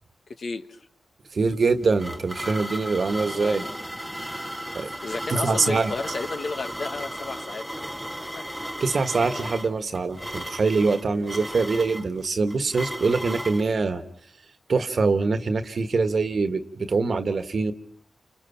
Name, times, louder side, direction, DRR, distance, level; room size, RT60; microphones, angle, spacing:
voice 1, 0.4-0.8 3.3-3.6 5.0-8.8, left 4 dB, 65° left, 8 dB, 1.4 m, -34 dB
voice 2, 1.3-3.6 4.7-4.9 5.3-5.9 8.8-14.0 14.7-17.7, right 4 dB, 65° right, 10 dB, 1.5 m, -24 dB
sound 1, 1.5-13.7, equal, ahead, 1.0 m, -35 dB
28.5 x 26.5 x 5.9 m, 0.62 s
cardioid pair, 50°, 0 cm